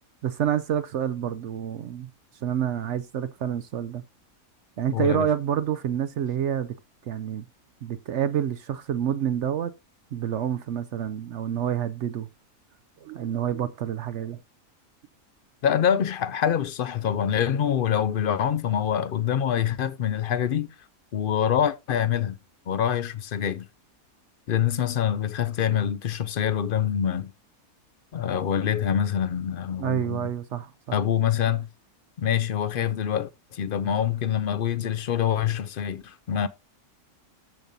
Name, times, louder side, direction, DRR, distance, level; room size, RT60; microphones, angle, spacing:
voice 1, 0.2-2.1 2.4-4.0 4.8-6.7 7.1-7.4 7.8-9.7 10.1-12.3 13.0-14.4 29.8-31.0, right 9 dB, 65° right, 0.8 m, -28 dB
voice 2, 4.9-5.3 15.6-20.7 21.1-22.4 22.7-23.7 24.5-27.3 28.1-30.2 30.9-31.7 32.2-36.5, left 9 dB, 60° left, 0.5 m, -25 dB
14.0 x 5.3 x 2.7 m
omnidirectional pair, 1.5 m